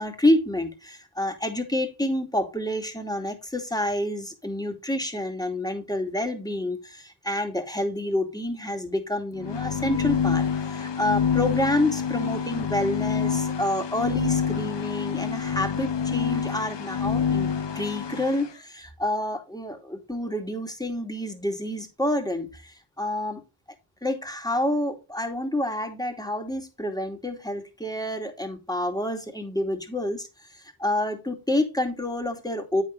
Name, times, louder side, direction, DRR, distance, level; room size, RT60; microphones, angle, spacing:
voice 1, 0.0-17.5 17.7-23.4 24.0-32.8, left 1 dB, 5° left, 5 dB, 2.5 m, -28 dB
sound 1, 9.4-18.5, left 7 dB, 55° left, 1.1 m, -27 dB
8.2 x 6.4 x 4.0 m, 0.28 s
cardioid pair, 45°, 50 cm